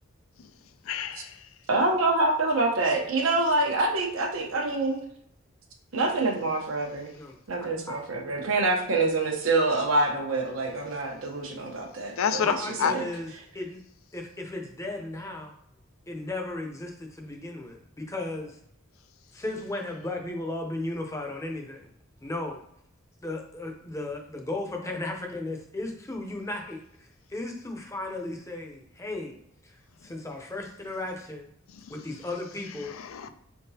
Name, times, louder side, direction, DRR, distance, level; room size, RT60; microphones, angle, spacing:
voice 1, 0.8-1.5 12.2-12.5 12.8-12.9 31.7-31.9 32.8-33.3, left 7 dB, 85° left, 0.4 m, -29 dB
voice 2, 1.7-5.0 5.9-7.1 7.5-13.0, right 2 dB, 85° right, 1.0 m, -26 dB
voice 3, 7.6-7.9 12.4-13.3 13.5-13.8 14.1-15.5 16.1-18.6 19.3-21.9 22.2-22.6 23.2-29.4 29.6-29.7 30.0-31.5 31.9-32.9, left 2 dB, 15° left, 0.6 m, -35 dB
4.7 x 3.6 x 2.8 m
head